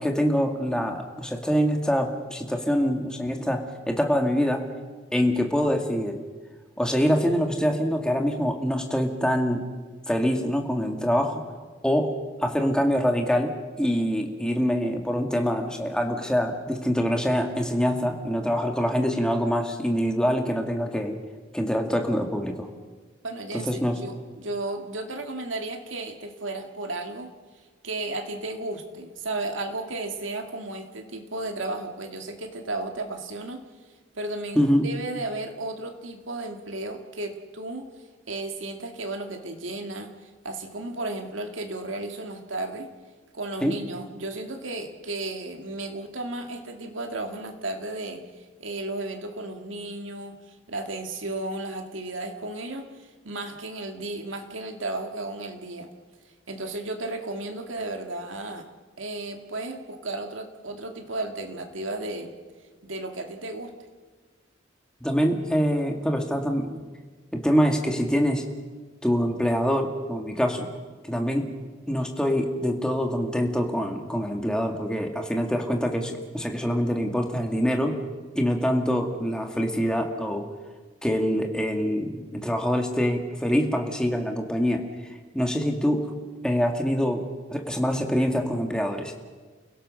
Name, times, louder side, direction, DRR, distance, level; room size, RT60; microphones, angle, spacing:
voice 1, 0.0-4.6 5.1-6.2 6.8-9.6 10.1-11.4 11.8-12.1 12.4-21.2 21.5-22.7 23.7-24.0 34.6-34.8 43.6-43.8 65.0-66.8 67.3-68.4 69.0-70.7 71.0-71.5 71.9-78.0 78.4-80.4 81.0-84.8 85.3-86.1 86.4-87.2 87.5-89.1, equal, 5° left, 3 dB, 2.2 m, -25 dB
voice 2, 23.2-27.3 27.8-33.6 34.2-37.9 38.3-42.9 43.3-55.9 56.5-58.7 59.0-62.3 62.8-63.7, right 2 dB, 85° right, 4 dB, 2.3 m, -34 dB
30.0 x 16.5 x 6.5 m, 1.4 s
head